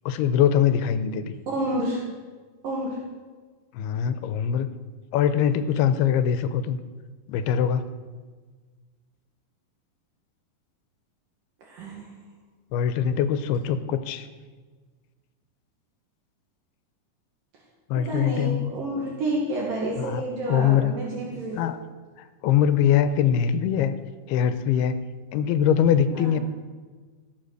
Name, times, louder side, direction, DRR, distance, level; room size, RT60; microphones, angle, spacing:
voice 1, 0.1-1.4 3.7-4.7 5.1-6.8 7.3-7.8 12.7-14.3 17.9-18.8 20.0-20.2 20.5-20.9 21.5-21.8 22.4-23.9 24.3-25.0 25.3-26.4, left 9 dB, 90° left, 11 dB, 2.7 m, -22 dB
voice 2, 1.5-2.0 2.6-3.0 11.6-12.1 17.9-21.7 26.1-26.3, right 1 dB, 60° right, -3 dB, 3.3 m, -29 dB
17.0 x 7.9 x 6.6 m, 1.4 s
omnidirectional pair, 4.5 m